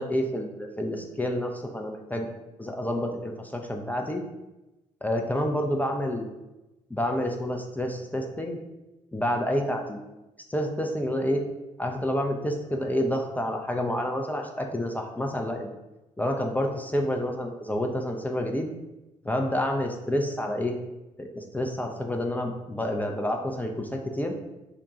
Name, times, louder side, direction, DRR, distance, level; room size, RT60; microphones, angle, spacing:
voice 1, 0.0-2.3 2.6-4.2 5.0-6.3 6.9-8.6 9.1-10.0 10.5-11.4 11.8-15.7 16.2-18.7 19.2-20.8 21.2-24.3, left 1 dB, 10° left, 2 dB, 0.5 m, -29 dB
3.7 x 2.2 x 3.8 m, 1.0 s
figure-of-eight pair, 45°, 17 cm